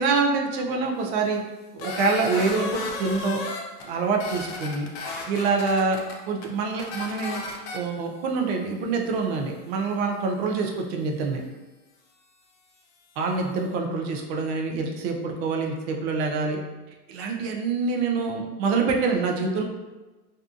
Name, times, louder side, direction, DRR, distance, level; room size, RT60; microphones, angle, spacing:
voice 1, 0.0-1.4 1.7-3.4 3.8-4.9 5.3-6.0 6.3-7.4 7.7-11.4 13.2-16.6 17.1-19.6, right 4 dB, 45° right, 2 dB, 0.5 m, -26 dB
sound 1, 1.8-3.8 4.1-6.1 6.4-6.5 6.8-7.8, left 3 dB, 40° left, 0.4 m, -33 dB
2.6 x 2.3 x 2.3 m, 1.2 s
hypercardioid pair, 110°, 49 cm